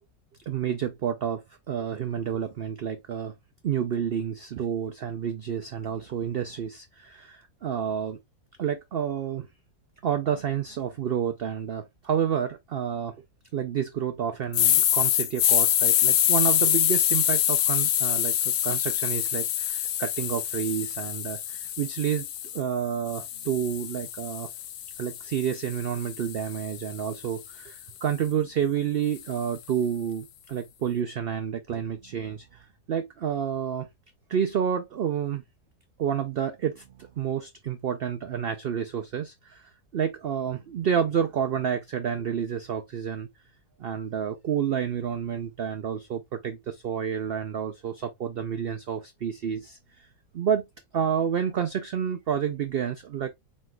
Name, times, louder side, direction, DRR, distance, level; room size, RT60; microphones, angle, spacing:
voice 1, 0.5-3.3 3.6-8.2 8.6-9.5 10.0-13.1 13.5-22.3 22.5-24.5 25.0-32.6 32.9-33.9 34.3-35.4 36.0-43.3 43.8-50.1 50.3-50.7 50.9-53.3, right 8 dB, 90° right, 0.5 m, -29 dB
sound 1, 14.5-22.6 23.1-27.3, left 11 dB, 80° left, 1.1 m, -25 dB
4.7 x 4.2 x 2.2 m
omnidirectional pair, 1.6 m